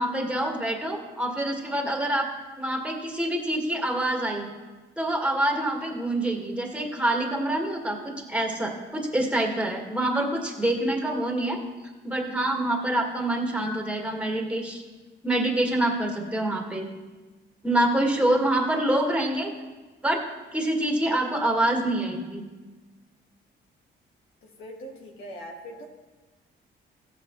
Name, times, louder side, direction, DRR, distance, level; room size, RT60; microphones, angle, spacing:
voice 1, 0.0-2.3 2.6-4.5 5.0-11.6 12.0-14.8 15.2-16.9 17.6-19.5 20.0-20.2 20.5-22.4, right 1 dB, 5° right, 1 dB, 1.9 m, -26 dB
voice 2, 24.4-25.8, equal, 90° left, -1 dB, 1.8 m, -41 dB
15.0 x 8.1 x 3.2 m, 1.3 s
cardioid pair, 90°, 20 cm